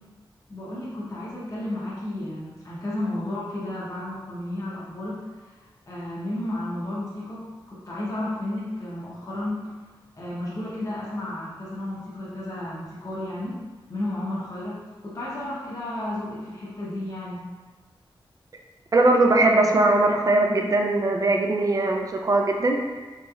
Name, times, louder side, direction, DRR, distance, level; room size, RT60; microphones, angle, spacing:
voice 1, 0.5-5.5 5.9-9.7 10.1-13.6 13.9-17.4, left 1 dB, 40° left, -8 dB, 0.8 m, -32 dB
voice 2, 18.9-23.0, right 2 dB, 40° right, 2 dB, 0.4 m, -20 dB
3.0 x 2.9 x 2.3 m, 1.3 s
wide cardioid pair, 85°, 9 cm